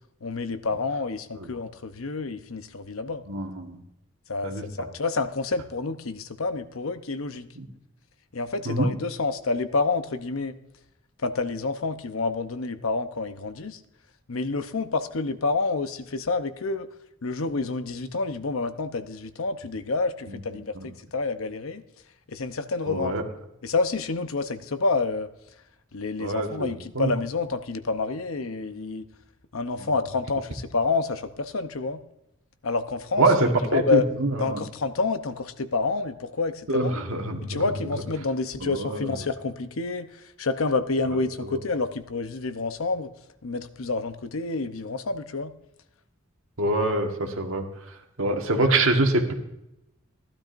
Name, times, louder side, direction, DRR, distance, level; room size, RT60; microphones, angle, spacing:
voice 1, 0.2-3.2 4.3-7.5 8.3-10.6 11.2-13.8 14.3-16.9 17.2-21.8 22.3-23.1 23.6-25.3 25.9-29.1 29.5-32.0 32.6-34.1 34.4-37.0 37.4-43.1 43.4-45.5, left 3 dB, 85° left, 10 dB, 0.8 m, -28 dB
voice 2, 3.3-3.8 4.4-4.9 7.6-7.7 8.6-8.9 20.7-20.9 22.9-23.2 26.2-27.1 29.8-29.9 33.2-34.6 36.7-37.6 38.6-39.1 41.5-41.6 46.6-47.7 48.2-49.3, right 2 dB, 75° right, 3 dB, 1.6 m, -25 dB
15.5 x 12.0 x 2.6 m, 0.87 s
head